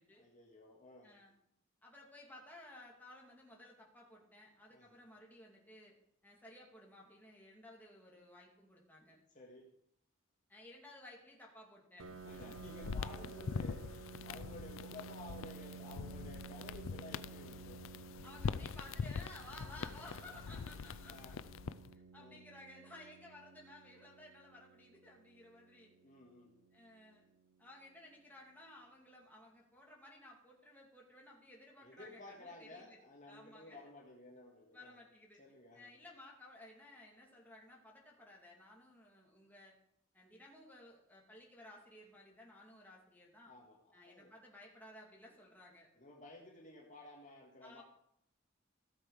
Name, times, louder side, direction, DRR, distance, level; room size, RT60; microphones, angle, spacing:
voice 1, 0.2-1.1 4.7-4.9 9.3-9.7 12.3-17.8 19.6-20.6 21.1-21.4 22.2-22.4 26.0-26.6 31.8-35.0 35.4-35.9 43.5-44.3 46.0-47.8, left 2 dB, 40° left, 0 dB, 2.0 m, -55 dB
voice 2, 1.0-1.3 1.8-5.9 6.2-9.2 10.5-12.6 18.2-21.4 21.8-25.9 26.7-27.2 27.6-33.0 33.3-33.8 34.7-35.4 35.7-39.8 40.1-43.5 43.9-45.9 47.6-47.8, left 1 dB, 10° left, -2 dB, 2.6 m, -57 dB
Piano, 12.0-27.4, right 6 dB, 70° right, 0.7 m, -54 dB
sound 1, 12.1-21.9, left 5 dB, 80° left, 0.4 m, -44 dB
16.0 x 7.4 x 5.0 m, 0.74 s
head